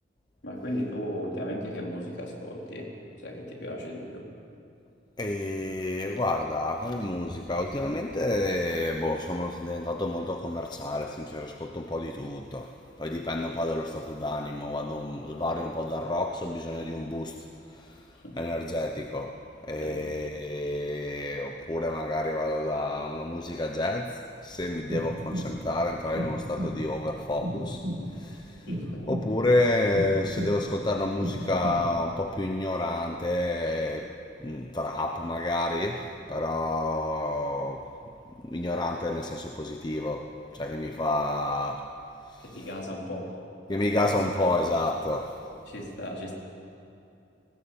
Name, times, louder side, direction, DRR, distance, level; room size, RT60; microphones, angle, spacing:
voice 1, 0.4-2.9 3.2-4.3 18.1-18.4 19.8-20.0 28.7-29.1 42.4-43.4 45.7-46.3, equal, 75° left, -2 dB, 4.1 m, -36 dB
voice 2, 5.2-18.1 18.4-27.8 28.1-28.7 29.1-34.1 34.4-37.9 38.4-41.9 42.3-42.4 43.7-45.4, left 1 dB, 25° left, 3 dB, 0.9 m, -29 dB
sound 1, 24.5-32.4, equal, 55° right, 2.2 m, -35 dB
19.0 x 18.5 x 8.8 m, 2.7 s
head